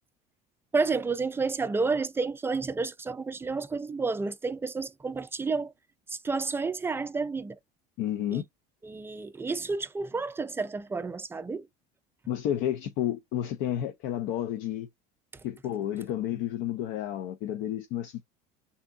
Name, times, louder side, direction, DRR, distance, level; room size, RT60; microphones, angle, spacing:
voice 1, 0.7-5.7 6.1-7.6 8.3-8.4 8.8-11.7, right 4 dB, 10° right, 0.3 m, -30 dB
voice 2, 8.0-8.5 12.3-14.9 15.4-18.2, left 11 dB, 65° left, 0.5 m, -31 dB
3.5 x 2.7 x 3.5 m
supercardioid pair, 110°, 21 cm